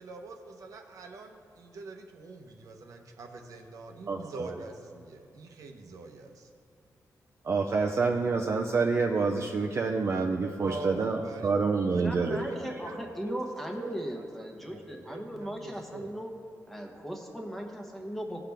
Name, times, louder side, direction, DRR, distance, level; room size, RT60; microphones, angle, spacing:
voice 1, 0.0-6.5 10.6-13.4 13.7-16.1, right 3 dB, 75° right, 3 dB, 0.9 m, -43 dB
voice 2, 4.1-4.5 7.4-12.4, right 4 dB, 45° right, 1 dB, 0.5 m, -27 dB
voice 3, 11.9-16.3 16.7-18.4, equal, 5° left, 1 dB, 1.0 m, -38 dB
16.5 x 5.8 x 3.5 m, 2.6 s
wide cardioid pair, 145°, 6 cm